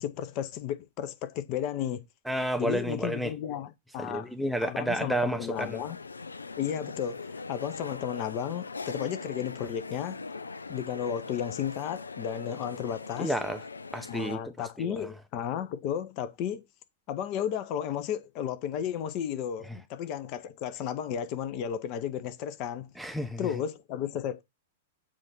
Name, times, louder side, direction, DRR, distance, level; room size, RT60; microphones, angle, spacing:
voice 1, 0.0-2.0 2.6-4.3 4.6-6.0 6.6-10.2 10.7-13.3 14.1-16.6 17.1-22.9 23.4-24.4, left 9 dB, 40° left, 0.8 m, -33 dB
voice 2, 2.3-3.3 4.0-5.8 13.2-13.6 13.9-15.1 23.0-23.5, right 1 dB, ahead, 0.6 m, -31 dB
sound 1, 5.5-14.4, left 4 dB, 75° left, 0.3 m, -41 dB
7.4 x 2.6 x 5.8 m
figure-of-eight pair, 100°, 0 cm